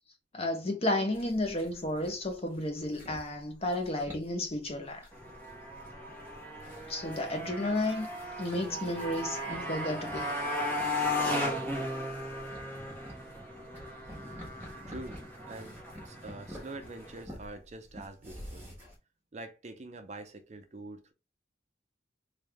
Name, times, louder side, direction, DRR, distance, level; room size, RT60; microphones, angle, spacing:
voice 1, 0.3-5.0 6.9-8.1 8.4-10.3, left 1 dB, 35° left, 0.8 m, -32 dB
sound 1, 1.1-19.0, equal, 15° right, 1.5 m, -51 dB
Motorcycle, 5.1-17.2, left 1 dB, 10° left, 1.2 m, -36 dB
voice 2, 14.9-15.2 15.5-18.7 19.3-21.1, right 2 dB, 40° right, 0.5 m, -45 dB
3.3 x 2.7 x 3.3 m
head